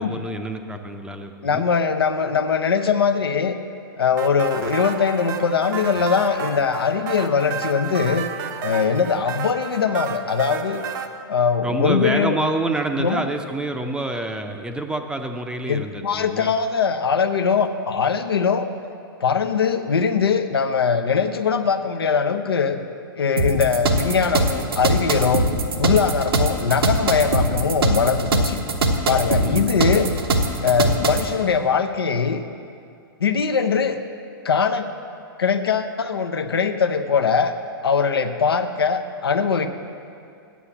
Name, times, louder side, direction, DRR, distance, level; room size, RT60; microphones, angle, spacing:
voice 1, 0.0-1.7 11.6-16.5 29.4-29.9, right 2 dB, 5° right, 6 dB, 0.6 m, -27 dB
voice 2, 1.4-3.6 4.0-8.3 8.6-10.8 11.3-12.3 13.0-13.3 15.7-18.7 19.2-22.8 23.2-25.4 25.8-28.6 29.1-30.1 30.6-32.4 33.2-34.0 34.4-34.9 35.4-37.6 37.8-39.7, left 6 dB, 85° left, 8 dB, 0.6 m, -21 dB
sound 1, 4.2-11.1, right 7 dB, 50° right, 0.7 m, -32 dB
sound 2, 23.4-31.3, right 2 dB, 80° right, 1.0 m, -21 dB
8.3 x 7.4 x 7.1 m, 2.4 s
hypercardioid pair, 115°, 12 cm